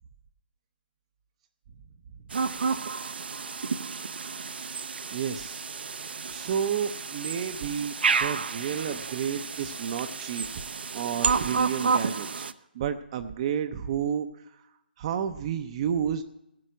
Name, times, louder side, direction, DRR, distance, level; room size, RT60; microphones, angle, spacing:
sound 1, 2.3-12.5, right 5 dB, 70° right, 0.7 m, -31 dB
voice 1, 5.1-5.7 6.3-10.5 10.9-12.4 12.7-14.3 15.0-16.2, right 8 dB, 35° right, 7 dB, 0.6 m, -31 dB
14.5 x 7.7 x 9.3 m, 0.86 s
hypercardioid pair, 155°, 6 cm